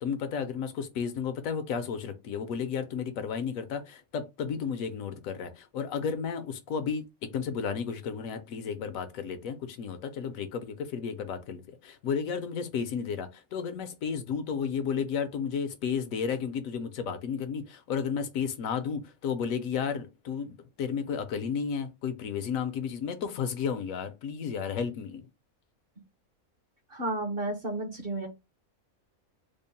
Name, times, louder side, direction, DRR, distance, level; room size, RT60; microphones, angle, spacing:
voice 1, 0.0-25.2, left 6 dB, 70° left, 1.0 m, -33 dB
voice 2, 26.9-28.3, right 2 dB, 50° right, 0.8 m, -32 dB
3.6 x 2.0 x 4.0 m
omnidirectional pair, 1.5 m